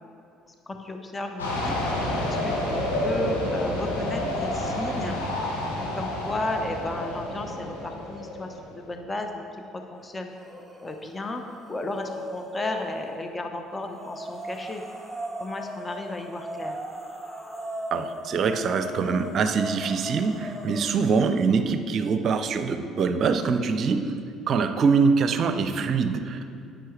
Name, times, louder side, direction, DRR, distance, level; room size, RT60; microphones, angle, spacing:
voice 1, 0.5-1.8 2.2-5.2 5.9-10.3 10.8-11.4 11.7-14.8 15.4-16.8, left 2 dB, 25° left, 4 dB, 0.9 m, -34 dB
sound 1, 1.4-8.8, left 1 dB, 85° left, 1.4 m, -29 dB
sound 2, 10.4-11.0 11.3-13.1 13.9-21.1, equal, 5° left, 1.3 m, -37 dB
voice 2, 17.9-24.1 24.5-26.5, right 5 dB, 50° right, 8 dB, 0.6 m, -24 dB
10.0 x 8.9 x 3.3 m, 2.4 s
hypercardioid pair, 55°, 0 cm